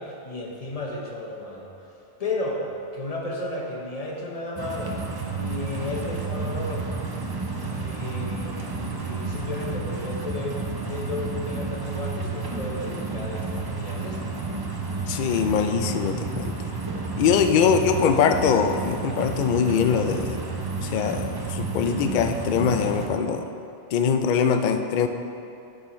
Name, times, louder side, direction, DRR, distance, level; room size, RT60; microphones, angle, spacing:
voice 1, 0.0-1.7 2.2-2.6 2.9-5.0 5.3-6.9 7.6-10.6 10.9-14.3 17.6-18.2, left 2 dB, 35° left, -1 dB, 1.0 m, -34 dB
sound 1, 4.6-23.1, right 3 dB, 30° right, 0.4 m, -31 dB
voice 2, 15.0-16.6 17.2-20.4 20.8-23.5 23.9-25.1, left 7 dB, 60° left, 7 dB, 0.5 m, -22 dB
9.2 x 7.1 x 3.1 m, 2.7 s
omnidirectional pair, 1.2 m